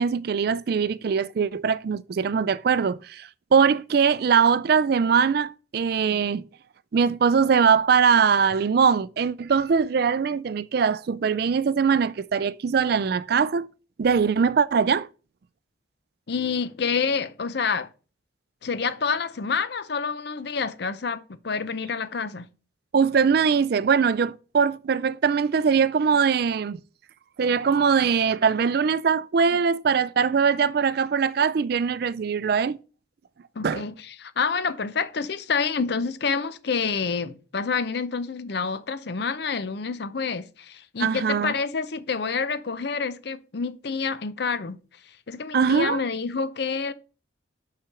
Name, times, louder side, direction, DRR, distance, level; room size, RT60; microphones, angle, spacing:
voice 1, 0.0-6.4 6.9-13.7 14.0-15.1 22.9-26.8 27.4-32.8 33.6-33.8 41.0-41.5 45.5-46.0, right 6 dB, 55° right, 0.3 m, -22 dB
voice 2, 16.3-17.9 18.6-22.5 33.6-44.8 45.3-46.9, left 5 dB, 55° left, 0.6 m, -28 dB
5.9 x 4.9 x 5.7 m
head